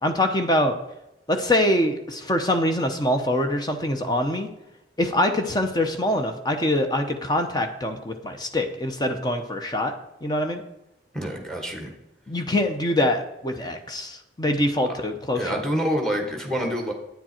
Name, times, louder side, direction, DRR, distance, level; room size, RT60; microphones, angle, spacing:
voice 1, 0.0-0.8 1.3-4.5 5.0-9.9 10.2-10.6 12.3-15.6, left 1 dB, 25° left, 5 dB, 0.8 m, -24 dB
voice 2, 11.1-11.9 15.3-16.9, equal, 5° left, 3 dB, 1.4 m, -27 dB
9.3 x 7.3 x 4.4 m, 0.90 s
head